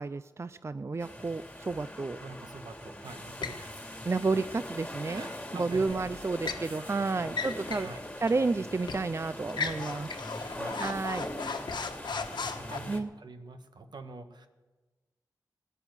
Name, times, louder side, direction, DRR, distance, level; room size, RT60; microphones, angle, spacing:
voice 1, 0.0-2.2 4.1-5.2 5.5-7.9 8.2-10.1 10.8-11.3 12.9-13.1, right 3 dB, 40° right, 14 dB, 0.4 m, -31 dB
sound 1, 1.0-13.0, left 1 dB, 15° left, 2.5 m, -42 dB
voice 2, 2.2-4.2 5.0-6.0 6.5-8.1 10.5-10.9 11.8-14.5, right 3 dB, 75° right, 7 dB, 1.4 m, -47 dB
sound 2, 3.4-3.7 5.9-6.7 7.3-7.9 8.3-8.4 8.9-9.1 9.5-12.8, left 5 dB, 80° left, 1.3 m, -36 dB
17.0 x 10.0 x 8.1 m, 1.2 s
cardioid pair, 45°, 8 cm